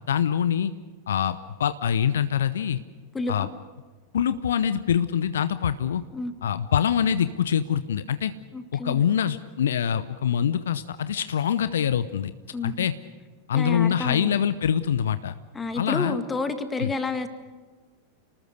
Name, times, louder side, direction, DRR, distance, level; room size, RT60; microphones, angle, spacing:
voice 1, 0.1-0.7 1.1-2.8 3.3-3.5 4.1-6.0 6.4-8.3 8.7-12.3 12.6-12.9 13.5-15.3 15.7-16.2 16.8-16.9, left 8 dB, 65° left, 13 dB, 0.8 m, -24 dB
voice 2, 3.1-3.5 6.1-6.3 8.5-9.0 12.5-12.9 13.5-14.5 15.5-17.3, left 3 dB, 15° left, 9 dB, 2.0 m, -30 dB
29.0 x 19.5 x 6.6 m, 1.4 s
figure-of-eight pair, 90°, 0 cm